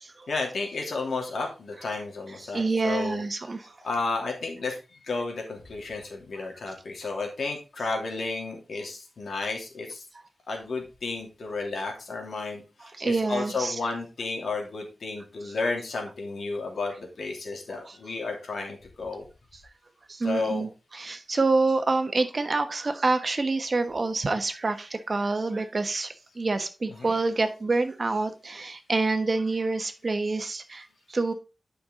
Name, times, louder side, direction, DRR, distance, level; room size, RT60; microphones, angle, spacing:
voice 1, 0.3-3.2 3.8-10.0 10.5-19.2 20.2-20.7 26.9-27.2, left 3 dB, 85° left, 1 dB, 2.7 m, -32 dB
voice 2, 2.4-3.7 12.8-13.8 17.9-18.0 20.1-31.3, right 3 dB, 45° right, 8 dB, 1.2 m, -27 dB
10.5 x 5.5 x 3.7 m, 0.32 s
wide cardioid pair, 105°, 0 cm